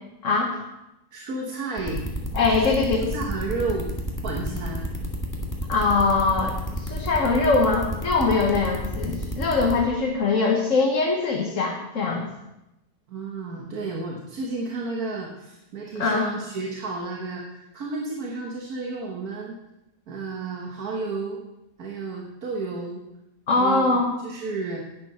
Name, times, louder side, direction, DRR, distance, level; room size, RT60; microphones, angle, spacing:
voice 1, 0.2-0.6 2.3-3.1 5.7-12.3 16.0-16.3 23.5-24.1, left 3 dB, 60° left, -1 dB, 1.6 m, -22 dB
voice 2, 1.1-2.0 2.5-3.9 4.2-4.9 13.1-19.6 20.1-21.4 21.8-23.0 23.6-24.8, right 3 dB, 85° right, -1 dB, 1.8 m, -32 dB
sound 1, 1.8-9.7, equal, 10° left, 1.8 m, -30 dB
11.0 x 9.7 x 4.3 m, 0.91 s
omnidirectional pair, 1.5 m